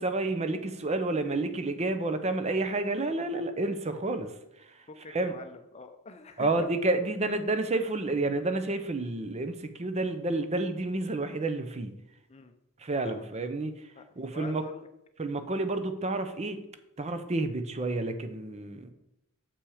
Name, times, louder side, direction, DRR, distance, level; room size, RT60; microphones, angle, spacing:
voice 1, 0.0-4.3 4.6-5.4 6.4-11.9 12.8-13.9 14.2-14.6 15.2-16.6 17.0-18.9, right 2 dB, 30° right, 9 dB, 0.6 m, -30 dB
voice 2, 4.9-6.5 12.3-12.5 13.0-13.2 14.0-14.1 14.3-14.9, left 3 dB, 30° left, 8 dB, 0.5 m, -45 dB
7.0 x 5.9 x 4.9 m, 0.84 s
head